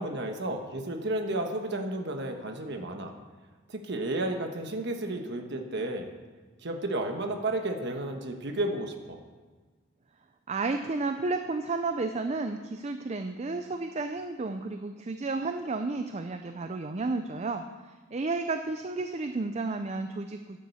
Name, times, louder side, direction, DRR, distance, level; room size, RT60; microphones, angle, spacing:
voice 1, 0.0-3.1 3.7-6.1 6.6-9.2, right 1 dB, 55° right, 4 dB, 1.2 m, -32 dB
voice 2, 10.5-17.6 18.1-20.6, right 3 dB, 30° right, 8 dB, 0.4 m, -32 dB
10.5 x 7.5 x 6.9 m, 1.4 s
head